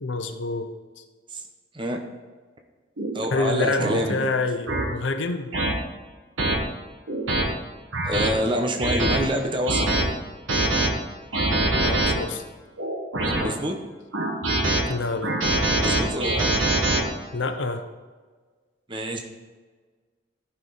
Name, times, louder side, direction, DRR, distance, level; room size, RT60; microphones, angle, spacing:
voice 1, 0.0-1.0 3.3-5.5 11.8-12.4 14.9-15.4 17.3-17.8, left 3 dB, 70° left, 7 dB, 0.8 m, -27 dB
sound 1, 3.0-3.1 3.8-4.0 4.7-4.8 5.5-5.7 6.4-6.5 7.1-7.4 7.9-8.3 8.8-9.2 9.7-10.0 10.5-10.9 11.3-12.1 12.8-13.5 14.1-14.8 15.2-17.0, right 2 dB, 85° right, 1.6 m, -23 dB
voice 2, 3.1-4.2 8.0-9.8 13.2-13.8 15.8-16.5 18.9-19.2, equal, 25° right, 3 dB, 0.8 m, -27 dB
14.0 x 5.8 x 4.0 m, 1.4 s
head